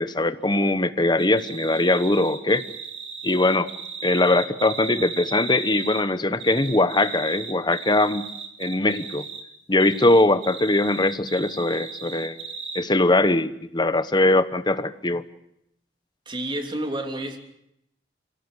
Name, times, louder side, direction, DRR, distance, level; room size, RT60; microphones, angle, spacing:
voice 1, 0.0-2.7 3.2-3.7 4.0-8.2 8.6-9.2 9.7-12.4 12.7-15.2, left 2 dB, 25° left, 13 dB, 1.1 m, -21 dB
sound 1, 1.2-6.0 6.4-9.4 9.8-12.8, right 5 dB, 90° right, 3.6 m, -36 dB
voice 2, 16.2-17.4, right 1 dB, 30° right, 4 dB, 3.2 m, -29 dB
29.5 x 18.0 x 8.2 m, 0.80 s
head